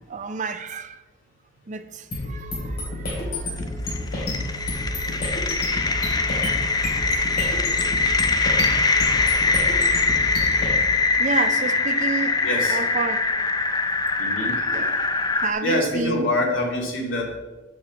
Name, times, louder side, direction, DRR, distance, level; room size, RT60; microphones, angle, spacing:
voice 1, 0.1-1.0 1.7-3.5 5.2-5.5 7.8-7.9 11.2-12.4 12.7-13.3 14.7-15.1 15.3-16.3, right 4 dB, 40° right, 0.5 m, -30 dB
sound 1, 2.1-10.7, left 1 dB, 50° left, 3.2 m, -29 dB
sound 2, 3.6-15.5, left 3 dB, 20° left, 0.5 m, -23 dB
voice 2, 5.0-5.7 12.4-12.8 14.2-14.5 15.6-17.4, left 1 dB, 80° left, 2.6 m, -26 dB
7.8 x 5.6 x 7.2 m
head